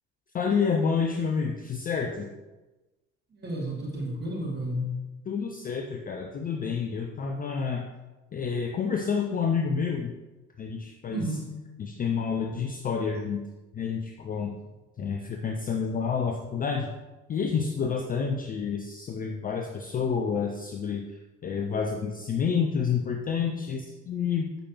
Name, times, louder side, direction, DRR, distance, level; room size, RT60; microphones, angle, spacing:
voice 1, 0.3-2.3 5.3-7.9 8.3-10.1 10.6-11.4 11.8-13.4 13.7-14.6 15.0-16.9 17.3-21.1 21.4-24.6, left 6 dB, 20° left, 2 dB, 0.5 m, -29 dB
voice 2, 3.4-5.0 11.1-11.4, equal, 25° right, -3 dB, 2.3 m, -31 dB
7.7 x 6.3 x 2.9 m, 1.1 s
figure-of-eight pair, 55°, 39 cm